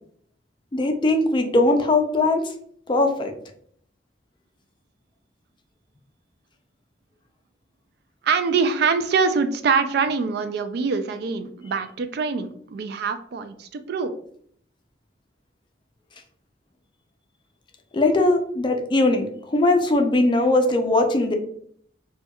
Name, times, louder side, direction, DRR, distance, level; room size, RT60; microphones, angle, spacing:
voice 1, 0.7-2.5 2.9-3.3 17.9-21.3, left 2 dB, 25° left, 5 dB, 0.4 m, -20 dB
voice 2, 8.2-14.1, right 5 dB, 60° right, 9 dB, 0.3 m, -24 dB
4.3 x 2.2 x 2.2 m, 0.63 s
head